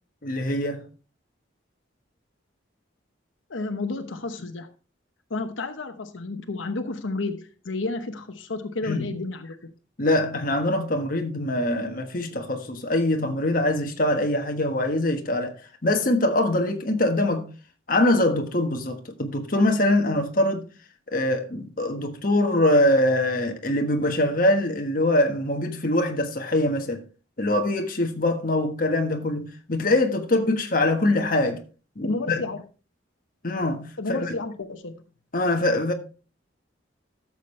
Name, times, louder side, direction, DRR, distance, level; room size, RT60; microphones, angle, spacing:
voice 1, 0.2-0.8 8.8-9.1 10.0-15.6 15.8-17.5 17.9-20.7 21.1-27.0 27.4-31.6 32.0-32.4 33.4-34.3 35.3-35.9, left 1 dB, 45° left, 1.3 m, -23 dB
voice 2, 3.5-4.7 5.3-9.7 32.0-32.6 34.0-34.9, left 3 dB, 90° left, 0.9 m, -31 dB
12.5 x 7.2 x 3.2 m
head